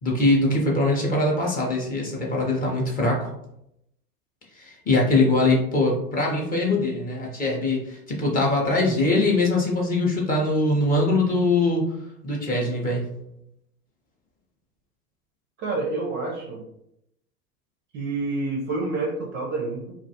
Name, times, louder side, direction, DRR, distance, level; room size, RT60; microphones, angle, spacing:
voice 1, 0.0-3.3 4.6-11.8 12.2-13.1, left 2 dB, 20° left, -2 dB, 0.6 m, -22 dB
voice 2, 15.6-16.6 17.9-19.9, right 3 dB, 25° right, -1 dB, 0.5 m, -28 dB
2.4 x 2.3 x 2.7 m, 0.78 s
hypercardioid pair, 100°, 46 cm